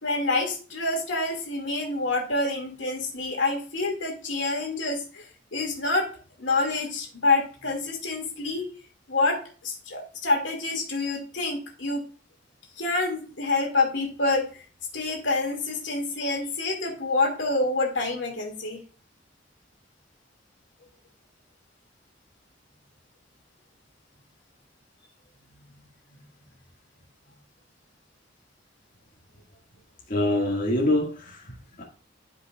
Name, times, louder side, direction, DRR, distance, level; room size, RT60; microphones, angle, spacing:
voice 1, 0.0-6.1 6.4-8.7 9.1-12.0 12.8-14.6 14.9-18.8, left 3 dB, 80° left, 2.3 m, -27 dB
voice 2, 30.1-31.8, left 1 dB, 45° left, 2.0 m, -25 dB
12.0 x 5.3 x 2.4 m
head